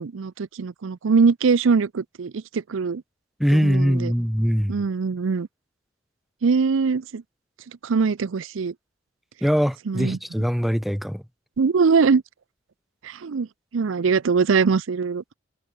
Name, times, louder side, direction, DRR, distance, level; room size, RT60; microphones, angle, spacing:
voice 1, 0.0-3.0 3.5-4.1 4.7-5.5 6.4-7.2 7.8-8.7 9.9-10.2 11.6-12.2 13.0-13.5 13.7-15.3, right 5 dB, 90° right, 0.5 m, -22 dB
voice 2, 3.4-4.7 9.4-11.2, equal, ahead, 2.0 m, -22 dB
head